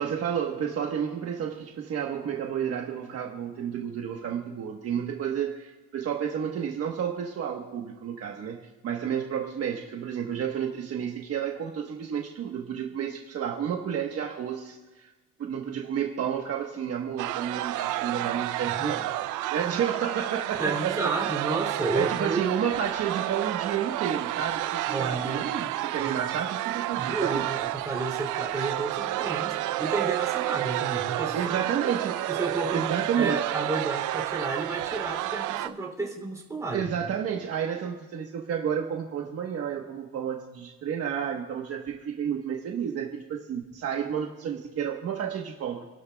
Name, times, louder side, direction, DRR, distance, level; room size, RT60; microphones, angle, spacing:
voice 1, 0.0-15.1 15.4-19.1 19.5-21.3 21.9-27.5 31.3-32.4 32.7-33.5 36.7-45.8, right 8 dB, 50° right, 1 dB, 1.3 m, -31 dB
sound 1, 17.2-35.7, right 15 dB, 80° right, 0.6 m, -30 dB
voice 2, 18.6-18.9 20.6-22.5 24.9-25.5 26.0-26.2 26.9-31.5 32.3-32.9 33.2-36.9, right 3 dB, 10° right, -1 dB, 3.0 m, -32 dB
30.0 x 12.5 x 2.3 m, 1.2 s
cardioid pair, 155°, 30 cm